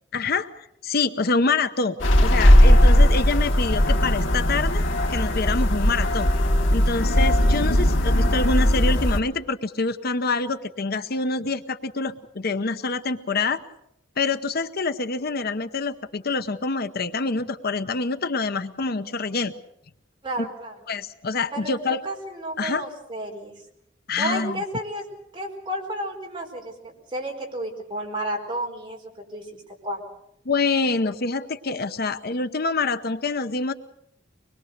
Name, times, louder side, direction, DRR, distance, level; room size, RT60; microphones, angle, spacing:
voice 1, 0.1-0.5 0.8-2.0 2.2-4.8 5.1-6.3 6.7-13.6 14.2-19.5 20.4-20.5 20.9-22.0 22.6-22.8 24.1-24.6 30.5-33.7, left 3 dB, 55° left, 11 dB, 0.8 m, -26 dB
sound 1, 2.0-9.2, equal, 90° left, 2.3 m, -18 dB
voice 2, 20.2-20.7 21.5-23.5 24.2-25.0 25.3-26.7 27.1-30.0, right 1 dB, 25° right, 0 dB, 4.6 m, -32 dB
24.5 x 21.5 x 6.6 m, 0.79 s
head